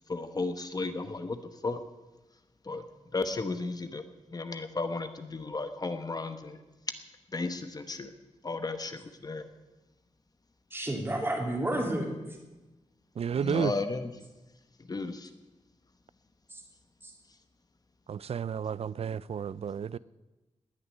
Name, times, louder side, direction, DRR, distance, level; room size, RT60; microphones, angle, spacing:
voice 1, 0.1-1.4 1.6-1.8 2.6-2.8 3.1-4.0 4.3-6.6 7.3-8.1 8.4-9.4 13.4-14.1 14.9-15.3, left 3 dB, 30° left, 9 dB, 1.0 m, -34 dB
voice 2, 10.7-12.1, right 1 dB, 20° right, 0 dB, 3.1 m, -30 dB
voice 3, 13.2-13.7 18.1-20.0, right 7 dB, 55° right, 20 dB, 0.4 m, -31 dB
19.5 x 6.7 x 9.9 m, 1.1 s
wide cardioid pair, 160°, 12 cm